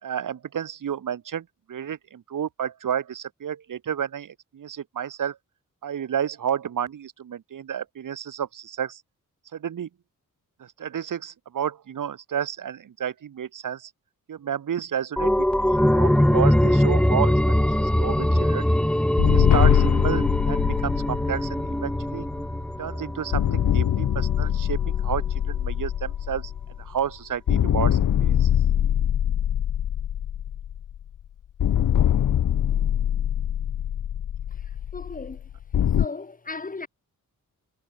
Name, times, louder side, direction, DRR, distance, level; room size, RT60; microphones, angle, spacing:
voice 1, 0.0-5.4 5.8-9.0 9.5-9.9 10.6-13.9 14.3-17.4 17.7-18.7 19.3-22.3 22.8-26.5 26.8-28.5, right 9 dB, 70° right, 3.6 m, -31 dB
sound 1, 15.2-24.5 24.9-25.0, left 1 dB, 5° left, 1.2 m, -22 dB
sound 2, 19.2-22.8 23.3-27.1 27.5-31.1 31.6-36.1, left 10 dB, 70° left, 1.4 m, -23 dB
voice 2, 34.5-35.5 36.0-36.9, left 3 dB, 25° left, 5.9 m, -36 dB
wide cardioid pair, 165°, 33 cm